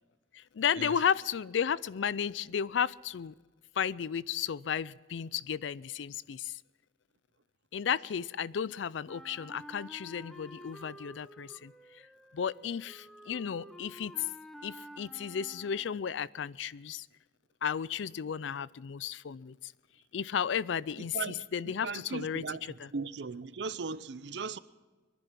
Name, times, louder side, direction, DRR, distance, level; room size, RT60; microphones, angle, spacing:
voice 1, 0.3-3.3 3.8-6.6 7.7-11.7 12.3-14.3 14.6-17.1 17.6-19.7 20.1-22.9, left 8 dB, 80° left, 0.4 m, -33 dB
Wind instrument woodwind instrument, 9.1-16.1, equal, ahead, 0.8 m, -51 dB
voice 2, 21.0-22.6 22.9-24.6, right 4 dB, 65° right, 0.6 m, -38 dB
22.5 x 11.0 x 5.8 m
head